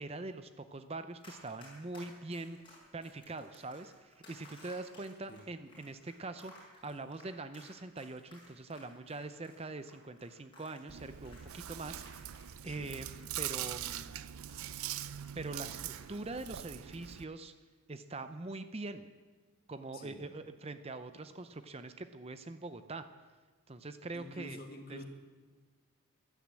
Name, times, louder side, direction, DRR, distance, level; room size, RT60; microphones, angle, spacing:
voice 1, 0.0-14.3 15.4-17.5 17.9-19.1 19.7-23.1 23.7-24.6 24.9-25.0, right 2 dB, 25° right, 10 dB, 0.6 m, -43 dB
Run, 1.2-12.8 13.1-16.5 16.8-17.1, left 1 dB, 25° left, 6.1 m, -58 dB
Chewing mastication, 10.9-17.2, right 11 dB, 75° right, 0.5 m, -42 dB
voice 2, 24.1-25.0, left 1 dB, 45° left, 3 dB, 2.0 m, -48 dB
16.0 x 11.5 x 7.6 m, 1.4 s
head